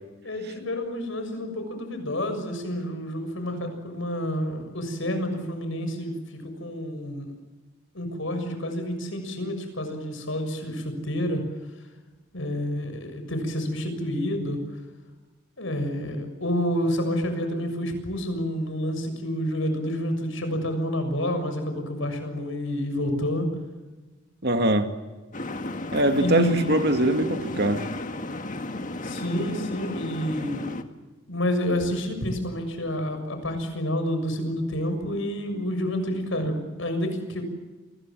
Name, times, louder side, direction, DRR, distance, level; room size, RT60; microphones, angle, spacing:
voice 1, 0.2-7.3 7.9-11.4 12.3-14.6 15.6-23.5 26.2-26.7 27.5-27.7 29.0-30.7 31.3-37.4, equal, 70° left, 7 dB, 6.8 m, -29 dB
voice 2, 24.4-24.9 25.9-27.8, right 1 dB, 50° right, 7 dB, 2.4 m, -22 dB
sound 1, 25.3-30.8, left 2 dB, 40° left, 1.8 m, -34 dB
29.5 x 22.0 x 7.7 m, 1.2 s
head